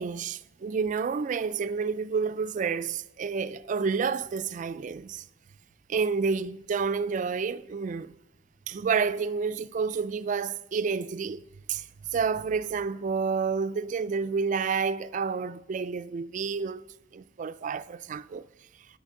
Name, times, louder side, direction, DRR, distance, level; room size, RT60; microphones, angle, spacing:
voice 1, 0.0-5.2 5.9-8.1 8.7-16.8 17.1-18.4, right 5 dB, 40° right, 0.3 m, -29 dB
9.9 x 9.2 x 3.7 m
head